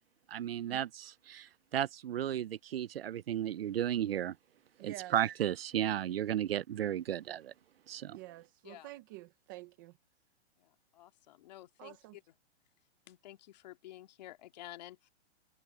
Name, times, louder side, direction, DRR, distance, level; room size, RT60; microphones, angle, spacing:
voice 1, 0.3-4.3 4.8-7.5 7.9-8.2, right 11 dB, 60° right, 0.7 m, -34 dB
voice 2, 4.8-5.1 8.1-9.9 11.8-12.2, right 19 dB, 20° right, 0.8 m, -48 dB
voice 3, 10.6-12.2 13.1-15.1, left 15 dB, 40° left, 2.2 m, -51 dB
hypercardioid pair, 170°, 34 cm